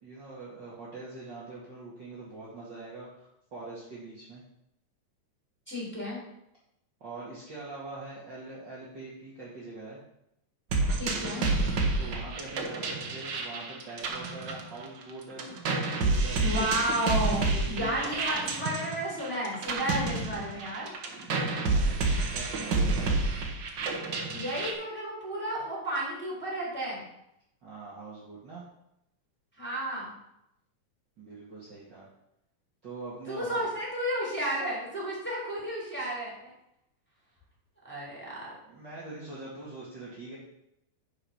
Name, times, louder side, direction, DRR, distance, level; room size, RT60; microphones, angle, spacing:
voice 1, 0.0-3.1 3.5-4.4 7.0-10.0 11.1-11.5 12.0-15.4 15.9-16.7 17.5-18.3 21.6-23.2 27.6-28.6 31.2-32.1 32.8-33.7 38.6-40.4, right 2 dB, 35° right, -8 dB, 2.4 m, -43 dB
voice 2, 5.7-6.2 10.9-11.4 16.4-20.9 24.3-27.1 29.6-30.1 33.3-36.3 37.8-38.5, right 1 dB, 5° left, -5 dB, 3.7 m, -32 dB
sound 1, 10.7-15.1 15.4-24.7, right 3 dB, 65° right, 1.1 m, -29 dB
10.0 x 5.7 x 5.9 m, 0.82 s
omnidirectional pair, 3.8 m